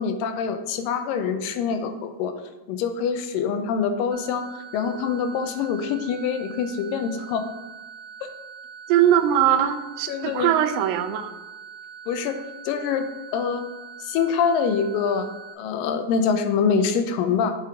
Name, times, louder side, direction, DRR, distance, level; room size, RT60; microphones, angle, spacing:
voice 1, 0.0-2.3 2.7-7.5 8.2-8.3 10.1-10.5 12.1-13.7 14.0-15.3 15.6-17.6, left 6 dB, 85° left, 8 dB, 2.3 m, -25 dB
sound 1, 4.1-15.5, right 7 dB, 50° right, 2.3 m, -43 dB
voice 2, 8.9-11.3, right 10 dB, 90° right, 8 dB, 2.3 m, -21 dB
7.4 x 5.1 x 3.5 m, 1.2 s
omnidirectional pair, 3.9 m